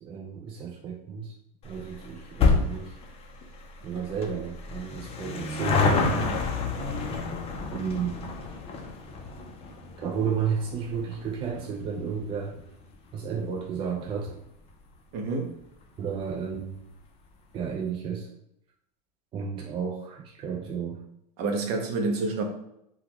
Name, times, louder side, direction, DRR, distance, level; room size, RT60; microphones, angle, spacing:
voice 1, 0.0-1.3 1.6-3.0 3.8-6.2 7.7-8.2 10.0-12.7 13.1-14.4 16.0-16.8 17.5-18.3 19.3-21.0, right 6 dB, 25° right, 0 dB, 0.3 m, -32 dB
sound 1, 1.6-14.4 14.7-14.8 15.7-15.8 16.0-16.1 16.3-16.4, left 4 dB, 30° left, 0.5 m, -30 dB
voice 2, 15.1-15.5 21.4-22.4, right 3 dB, 50° right, 3 dB, 0.7 m, -28 dB
3.5 x 2.3 x 3.0 m, 0.79 s
supercardioid pair, 120°, 21 cm